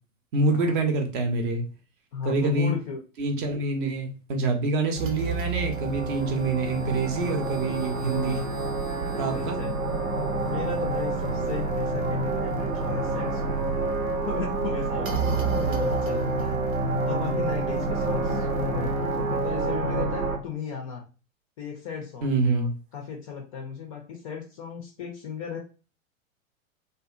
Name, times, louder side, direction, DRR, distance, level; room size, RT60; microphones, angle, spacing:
voice 1, 0.3-1.6 2.2-2.7 3.2-8.4 9.0-9.6 15.4-15.5 22.2-22.7, right 3 dB, 40° right, 0.6 m, -26 dB
voice 2, 2.1-3.0 9.0-9.8 10.5-13.6 14.3-16.6 17.0-21.0 21.6-25.6, left 6 dB, 30° left, 0.4 m, -36 dB
sound 1, 5.0-20.4, right 3 dB, 80° right, 0.7 m, -28 dB
2.7 x 2.3 x 2.3 m
figure-of-eight pair, 100°, 41 cm